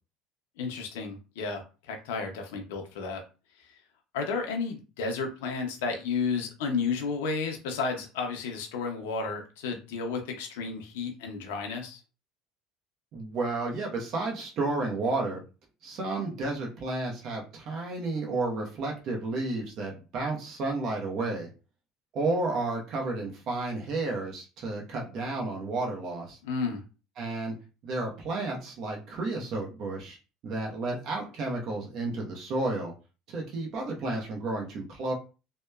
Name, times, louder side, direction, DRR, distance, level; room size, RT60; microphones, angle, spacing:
voice 1, 0.6-3.2 3.6-3.7 4.1-12.0 26.4-26.8, left 4 dB, 85° left, 3 dB, 0.5 m, -32 dB
voice 2, 13.1-15.4 15.8-21.5 22.1-26.4 27.2-27.5 27.8-30.2 30.4-32.9 33.3-35.1, right 2 dB, 55° right, -1 dB, 0.8 m, -32 dB
2.8 x 2.1 x 2.2 m, 0.32 s
supercardioid pair, 100°, 0 cm